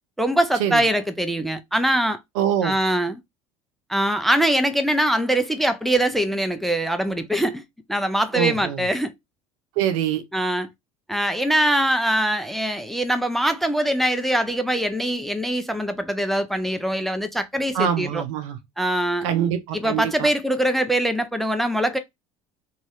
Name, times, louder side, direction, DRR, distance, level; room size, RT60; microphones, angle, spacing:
voice 1, 0.2-2.2 2.6-3.2 3.9-7.6 7.9-9.1 10.3-10.7 11.1-18.2 18.8-19.3 19.7-22.0, right 1 dB, ahead, 0.5 m, -23 dB
voice 2, 2.4-2.8 8.3-8.8 9.8-10.2 17.7-18.6 19.2-20.3, right 9 dB, 75° right, 0.6 m, -24 dB
2.7 x 2.4 x 3.0 m
hypercardioid pair, 75°, 17 cm